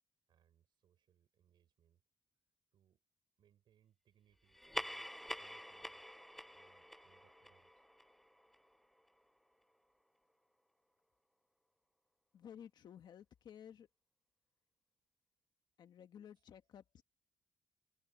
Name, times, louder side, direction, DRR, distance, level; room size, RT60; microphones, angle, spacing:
voice 1, 0.3-2.0 2.7-3.0 3.4-6.2 6.5-7.9 16.3-17.0, right 10 dB, 65° right, 5.7 m, -75 dB
sound 1, 4.5-9.4, equal, ahead, 0.7 m, -47 dB
voice 2, 12.3-13.9 15.8-17.0, left 9 dB, 55° left, 1.6 m, -55 dB
cardioid pair, 155°, 9 cm